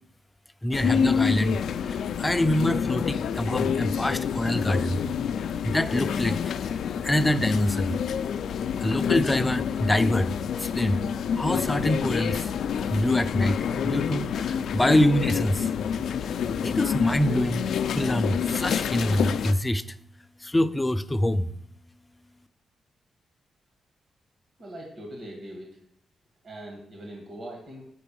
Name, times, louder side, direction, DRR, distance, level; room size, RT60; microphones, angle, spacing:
voice 1, 0.6-5.0 5.6-6.5 7.0-8.4 8.8-11.0 11.4-12.5 12.9-13.6 13.8-15.7 16.6-20.0 20.4-21.5, left 1 dB, 15° left, 12 dB, 0.4 m, -25 dB
sound 1, 0.7-19.5, left 7 dB, 85° left, 0.3 m, -28 dB
voice 2, 24.6-25.8 26.4-27.8, right 1 dB, 50° right, 0 dB, 1.6 m, -41 dB
6.7 x 5.3 x 6.9 m, 0.73 s
cardioid pair, 115°, 0 cm